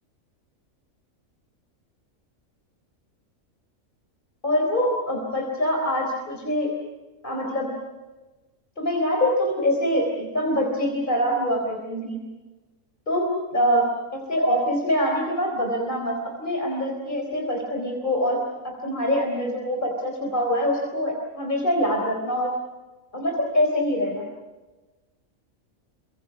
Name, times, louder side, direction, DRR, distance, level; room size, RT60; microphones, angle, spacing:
voice 1, 4.4-6.7 7.2-7.7 8.8-12.2 13.1-13.9 14.1-18.4 18.6-22.5 23.1-24.3, equal, 35° left, 1 dB, 4.3 m, -24 dB
29.5 x 25.5 x 5.9 m, 1.2 s
omnidirectional pair, 1.4 m